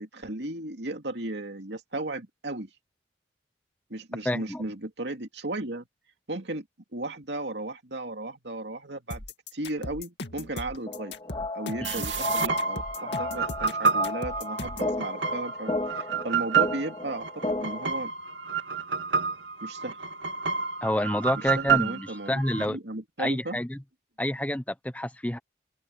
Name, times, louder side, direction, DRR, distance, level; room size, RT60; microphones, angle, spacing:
voice 1, 0.0-2.7 3.9-5.9 6.3-6.7 6.9-9.2 9.5-11.2 11.5-18.1 19.6-20.0 21.3-23.6, right 2 dB, 65° right, 2.7 m, -35 dB
voice 2, 4.2-4.6 11.8-12.0 20.8-22.8 23.2-23.8 24.2-25.4, left 1 dB, 10° left, 0.6 m, -28 dB
sound 1, 9.1-14.9, left 2 dB, 65° left, 2.3 m, -38 dB
sound 2, 10.9-17.9, left 2 dB, 30° left, 1.9 m, -34 dB
sound 3, 11.8-22.7, right 6 dB, 80° right, 2.4 m, -29 dB
open air
head